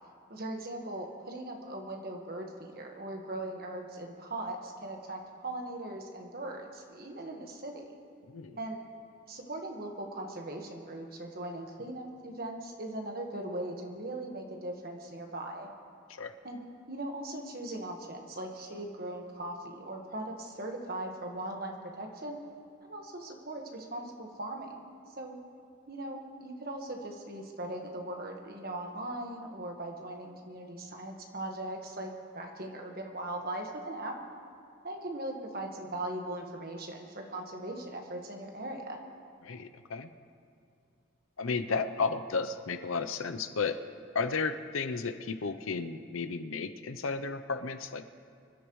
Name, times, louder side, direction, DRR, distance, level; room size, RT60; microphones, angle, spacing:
voice 1, 0.3-7.9 8.5-8.8 9.3-15.7 16.4-22.4 22.8-24.8 25.1-25.4 25.9-34.2 34.8-39.0, right 1 dB, 45° right, 2 dB, 1.5 m, -39 dB
voice 2, 8.3-8.6 16.1-16.3 39.4-40.1 41.4-43.8 44.1-48.1, left 4 dB, 85° left, 9 dB, 0.7 m, -33 dB
25.5 x 12.0 x 3.2 m, 2.4 s
head